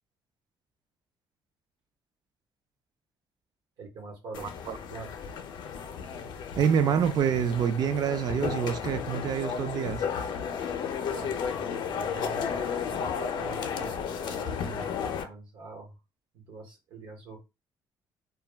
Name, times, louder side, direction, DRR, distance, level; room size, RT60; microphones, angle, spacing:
voice 1, 3.8-4.5 4.8-5.1 11.0-14.9 15.2-16.0 16.3-17.4, right 4 dB, 85° right, 1.0 m, -44 dB
sound 1, 4.3-15.2, left 7 dB, 75° left, 0.4 m, -33 dB
voice 2, 6.6-10.0, right 8 dB, 60° right, 0.3 m, -26 dB
2.2 x 2.2 x 3.3 m
cardioid pair, 135°, 8 cm